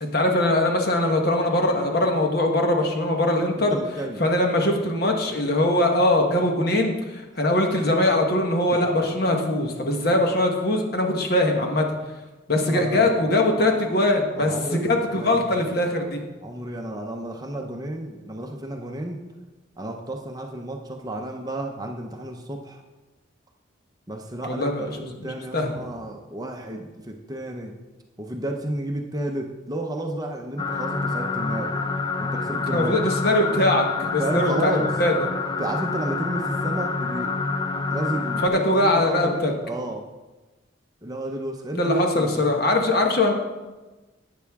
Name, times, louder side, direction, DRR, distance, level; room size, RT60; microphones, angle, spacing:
voice 1, 0.0-3.8 4.2-11.9 12.5-16.2 24.5-24.9 25.2-25.7 32.5-35.1 38.4-39.5 41.8-43.3, left 1 dB, 50° left, 2 dB, 1.2 m, -22 dB
voice 2, 3.6-4.2 8.7-8.8 12.7-13.1 14.4-14.9 15.2-15.6 16.4-19.2 19.8-22.8 24.1-27.7 28.2-31.8 32.2-33.0 34.2-34.9 35.6-37.3 37.9-40.1 41.0-42.4, right 1 dB, 20° right, 3 dB, 0.7 m, -32 dB
sound 1, 30.6-38.5, left 4 dB, 20° left, 0.3 m, -27 dB
12.0 x 8.4 x 3.6 m, 1.2 s
head